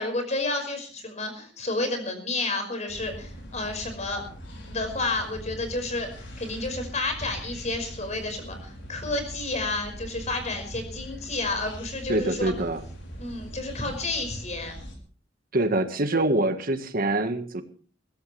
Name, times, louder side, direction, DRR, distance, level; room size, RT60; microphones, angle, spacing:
voice 1, 0.0-4.2 4.7-12.5 13.2-14.8, left 2 dB, 40° left, 6 dB, 5.4 m, -30 dB
sound 1, 2.9-15.0, equal, 75° left, 5.4 m, -41 dB
voice 2, 12.1-12.8 15.5-17.6, right 2 dB, 50° right, 8 dB, 1.6 m, -25 dB
22.0 x 16.0 x 3.3 m, 0.42 s
head